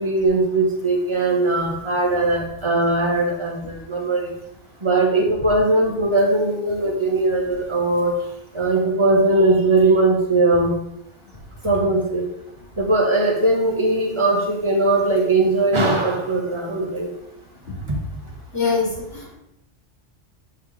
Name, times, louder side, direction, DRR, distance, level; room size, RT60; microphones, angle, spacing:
voice 1, 0.0-4.3 4.8-8.3 8.5-10.7 11.6-12.3 12.8-17.1 17.9-18.0, right 2 dB, 25° right, 1 dB, 1.3 m, -19 dB
voice 2, 18.5-18.9 19.1-19.3, left 5 dB, 55° left, -7 dB, 3.1 m, -22 dB
11.5 x 4.7 x 3.3 m, 0.82 s
omnidirectional pair, 1.2 m